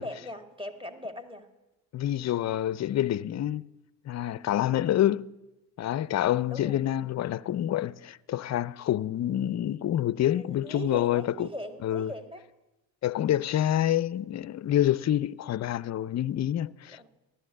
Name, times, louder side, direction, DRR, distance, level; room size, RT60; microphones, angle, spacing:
voice 1, 0.0-1.5 6.5-6.9 10.2-12.4 16.9-17.1, equal, 10° right, 1.8 m, -40 dB
voice 2, 1.9-3.6 4.1-5.3 5.8-11.5 11.8-12.1 13.0-17.1, left 12 dB, 35° left, 0.5 m, -27 dB
14.5 x 11.5 x 6.6 m
hypercardioid pair, 50°, 48 cm